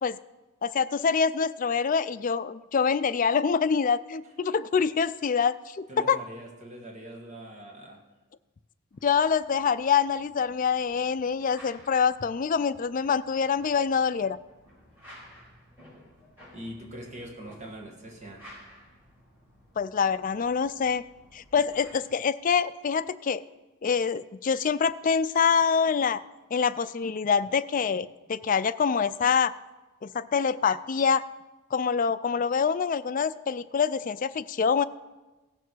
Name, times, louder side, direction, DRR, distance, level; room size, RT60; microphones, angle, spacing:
voice 1, 0.6-6.2 9.0-14.4 19.8-21.0 21.3-23.4 23.8-26.2 26.5-29.5 30.0-31.3 31.7-34.8, left 6 dB, 40° left, 14 dB, 0.4 m, -25 dB
voice 2, 5.9-8.0 16.5-18.5, right 1 dB, 35° right, 0 dB, 1.6 m, -42 dB
sound 1, 8.9-21.9, equal, 10° right, 5.0 m, -54 dB
16.5 x 6.9 x 6.2 m, 1.1 s
head